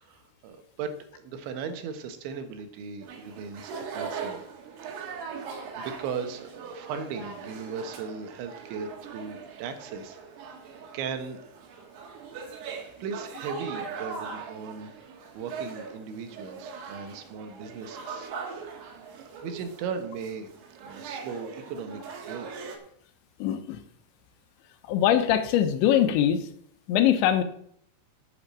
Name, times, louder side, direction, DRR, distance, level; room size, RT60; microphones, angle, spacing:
voice 1, 0.0-4.5 5.1-5.4 5.8-10.2 10.7-11.7 12.6-18.3 18.8-20.5 20.8-22.5, right 6 dB, 90° right, 8 dB, 3.6 m, -38 dB
sound 1, 3.0-22.8, right 5 dB, 70° right, 3.6 m, -40 dB
voice 2, 23.4-23.8 24.9-26.4 26.9-27.4, left 10 dB, 80° left, 8 dB, 3.3 m, -22 dB
8.7 x 8.0 x 7.5 m, 0.66 s
omnidirectional pair, 5.2 m